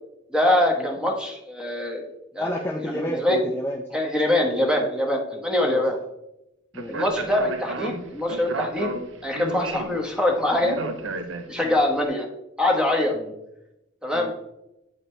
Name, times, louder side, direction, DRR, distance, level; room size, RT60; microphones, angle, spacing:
voice 1, 0.3-2.0 2.3-2.5 3.1-3.4 3.9-5.9 6.9-8.9 9.2-10.8 11.5-12.3 12.6-13.1 14.0-14.3, left 1 dB, 5° right, 1 dB, 1.1 m, -23 dB
voice 2, 2.3-4.0 4.4-4.9 5.6-6.0 6.7-7.0 9.8-10.0 11.6-11.8 13.1-13.3 14.1-14.3, equal, 10° left, -2 dB, 0.6 m, -31 dB
Speech, 6.7-11.8, right 3 dB, 90° right, 0.7 m, -33 dB
8.6 x 5.0 x 3.2 m, 0.86 s
head